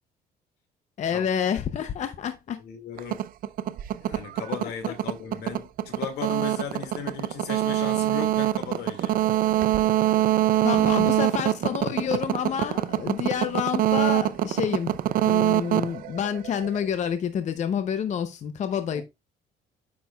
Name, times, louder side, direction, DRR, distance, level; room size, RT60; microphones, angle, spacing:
voice 1, 1.0-2.6 10.6-15.0 15.2-19.0, left 8 dB, 45° left, 0.6 m, -28 dB
voice 2, 2.6-3.2 4.0-9.2 18.9-19.0, left 7 dB, 75° left, 2.0 m, -36 dB
sound 1, 3.0-16.8, right 13 dB, 55° right, 0.5 m, -24 dB
9.4 x 6.1 x 2.3 m
cardioid pair, 110°, 17 cm